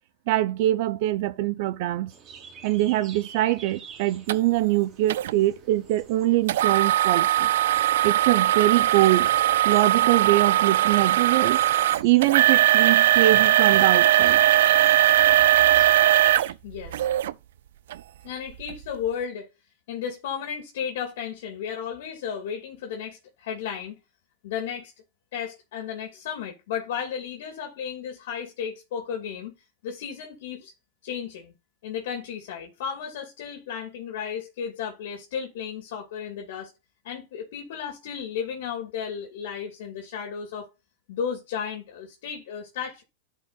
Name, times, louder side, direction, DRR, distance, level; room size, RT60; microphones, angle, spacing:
voice 1, 0.3-2.1 2.6-7.5 8.0-9.3 9.6-11.6 12.0-14.4, right 15 dB, 55° right, 0.9 m, -23 dB
sound 1, 2.1-16.5, right 6 dB, 25° right, 3.2 m, -49 dB
sound 2, 4.3-4.4 5.1-5.3 6.5-17.3 17.9-18.0 18.6-18.7, right 13 dB, 80° right, 0.5 m, -20 dB
voice 2, 16.6-17.1 18.2-19.5 19.9-24.0 24.4-24.9 25.3-29.6 29.8-30.7 31.0-31.6 31.8-36.7 37.0-40.7 41.1-43.0, left 7 dB, 70° left, 2.5 m, -34 dB
12.0 x 5.4 x 2.5 m
supercardioid pair, 145°, 0 cm